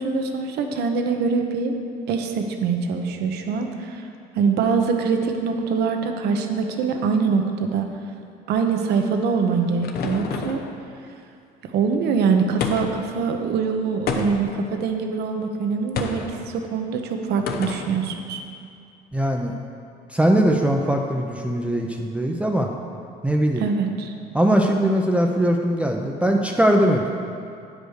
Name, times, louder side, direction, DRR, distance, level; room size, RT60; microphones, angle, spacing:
voice 1, 0.0-1.8 2.1-4.0 4.3-7.9 8.5-10.6 11.7-18.4 23.6-24.1, right 5 dB, 75° right, 5 dB, 0.9 m, -23 dB
sound 1, 9.2-10.7 12.6-13.1 14.1-14.6 16.0-16.3 17.5-17.9, left 5 dB, 65° left, 0.9 m, -29 dB
voice 2, 19.1-19.5 20.1-22.7 23.2-23.7 24.3-27.1, right 1 dB, 5° right, 1 dB, 0.6 m, -20 dB
9.0 x 5.1 x 6.4 m, 2.4 s
cardioid pair, 110°, 17 cm